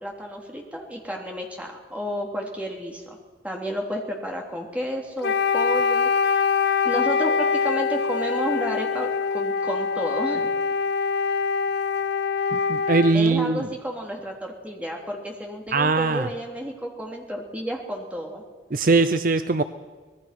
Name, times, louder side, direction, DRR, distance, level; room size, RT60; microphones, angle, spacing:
voice 1, 0.0-3.2 3.4-6.1 6.4-6.5 6.8-10.5 13.1-18.4, equal, 5° right, 0 dB, 3.1 m, -31 dB
Wind instrument woodwind instrument, 5.2-13.2, left 5 dB, 65° left, 0.8 m, -24 dB
voice 2, 12.5-13.7 15.7-16.3 18.7-19.6, right 3 dB, 45° right, 11 dB, 0.6 m, -21 dB
24.5 x 19.0 x 6.0 m, 1.4 s
head